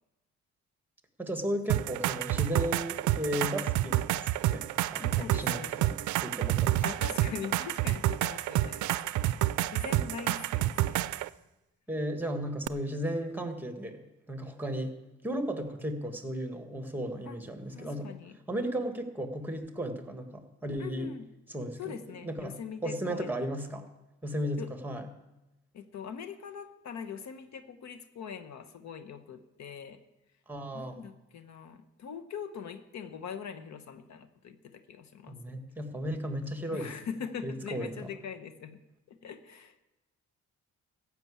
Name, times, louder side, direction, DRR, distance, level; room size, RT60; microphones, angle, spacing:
voice 1, 1.2-6.8 11.9-14.9 15.2-18.1 18.5-21.1 21.5-21.9 22.2-23.9 24.2-25.1 30.5-31.0 35.3-36.9 37.4-38.1, equal, 5° right, 6 dB, 1.6 m, -35 dB
sound 1, 1.7-11.3 12.7-12.8, right 15 dB, 75° right, 0.5 m, -29 dB
voice 2, 5.0-5.7 6.8-11.0 17.3-17.4 17.7-18.4 20.8-21.2 21.8-23.3 24.6-24.7 25.7-30.0 30.7-35.3 36.7-38.8 39.1-39.8, left 7 dB, 65° left, 9 dB, 1.0 m, -42 dB
14.5 x 6.1 x 8.4 m, 0.97 s
cardioid pair, 90°, 30 cm